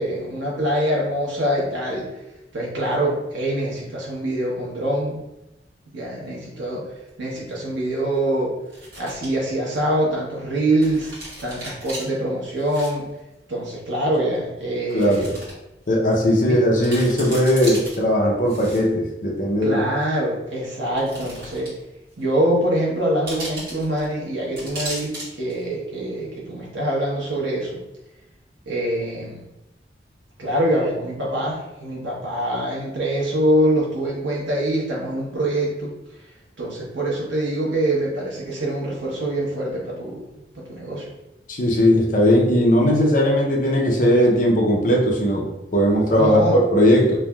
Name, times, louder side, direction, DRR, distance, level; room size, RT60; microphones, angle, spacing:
voice 1, 0.0-2.1 2.5-5.2 5.9-6.8 7.2-8.5 9.0-11.1 11.4-13.1 13.5-15.4 16.5-16.6 19.6-21.7 22.2-27.7 28.7-29.4 30.4-35.9 36.6-40.2 40.5-41.1 46.2-46.6, right 1 dB, 80° right, -4 dB, 1.0 m, -24 dB
sound 1, 7.1-7.2 8.6-9.3 9.7-9.8 10.8-12.0 12.6-12.9 13.2-13.3 14.1-14.2 14.9-15.5 15.9-16.0 16.5-16.6 16.8-18.0 18.4-19.1 20.0-20.1 20.9-21.8 22.1-22.2 23.3-24.1 24.6-25.2 25.5-25.6, right 1 dB, 60° right, 1.4 m, -35 dB
voice 2, 14.9-15.3 15.9-19.8 41.5-47.2, equal, 45° left, -1 dB, 0.6 m, -18 dB
3.2 x 2.5 x 2.3 m, 0.92 s
head